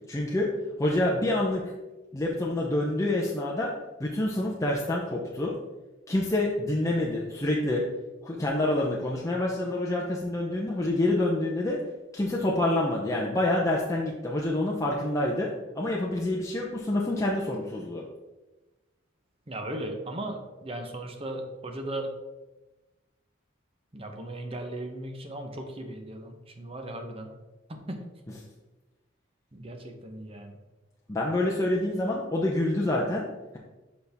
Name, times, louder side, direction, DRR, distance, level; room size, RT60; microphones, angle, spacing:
voice 1, 0.1-0.5 0.8-1.8 2.1-3.7 4.0-5.5 6.1-7.8 8.2-11.8 12.1-18.0 31.1-33.3, left 1 dB, 15° left, -3 dB, 0.6 m, -27 dB
voice 2, 19.5-22.1 23.9-27.3 27.7-28.0 29.5-30.6, right 1 dB, 30° right, 4 dB, 0.9 m, -37 dB
6.8 x 5.3 x 3.5 m, 1.1 s
head